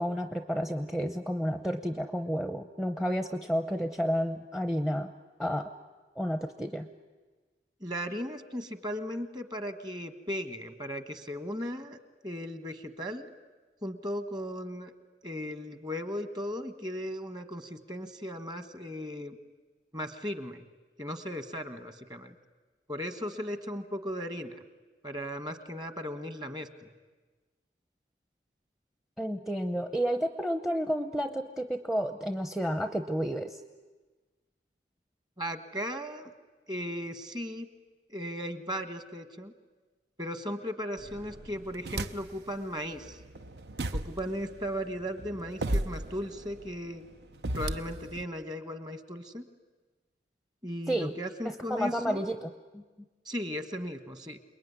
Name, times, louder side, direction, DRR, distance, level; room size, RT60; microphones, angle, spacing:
voice 1, 0.0-5.1 5.4-5.7 6.2-6.9 29.2-33.6 50.9-51.1 51.4-52.8, equal, ahead, 8 dB, 0.8 m, -31 dB
voice 2, 7.8-12.0 12.2-13.3 13.8-14.9 15.2-19.4 19.9-20.6 21.0-22.3 22.9-24.6 25.0-26.9 35.4-36.3 36.7-37.7 38.1-39.5 40.2-43.2 43.9-47.1 47.5-49.4 50.6-52.2 53.2-54.4, equal, 25° right, 10 dB, 1.4 m, -37 dB
sound 1, 41.0-42.5 42.9-48.2, right 1 dB, 70° right, 0.9 m, -36 dB
28.5 x 21.0 x 9.7 m, 1.3 s
head